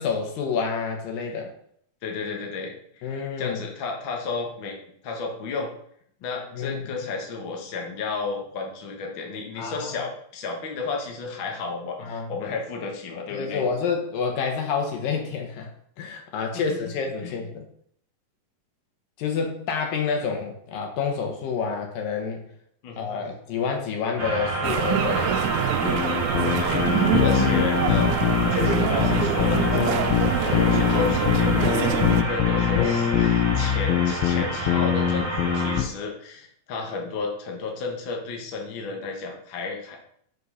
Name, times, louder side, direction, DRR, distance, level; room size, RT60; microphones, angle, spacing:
voice 1, 0.0-1.5 3.0-3.6 6.5-6.8 9.6-9.9 12.0-12.3 13.3-15.7 16.0-17.6 19.2-22.4 23.0-25.4 32.8-33.0, left 5 dB, 75° left, 3 dB, 2.8 m, -28 dB
voice 2, 2.0-4.8 5.0-5.7 6.2-13.6 16.5-16.9 17.2-17.3 22.8-23.1 26.6-28.1 28.5-40.1, left 4 dB, 60° left, 0 dB, 1.3 m, -32 dB
sound 1, 24.2-35.8, right 2 dB, 5° right, 2.0 m, -29 dB
sound 2, 24.6-32.2, right 11 dB, 85° right, 1.7 m, -26 dB
sound 3, 25.8-35.8, left 11 dB, 90° left, 2.6 m, -23 dB
6.4 x 5.4 x 5.4 m, 0.68 s
omnidirectional pair, 4.1 m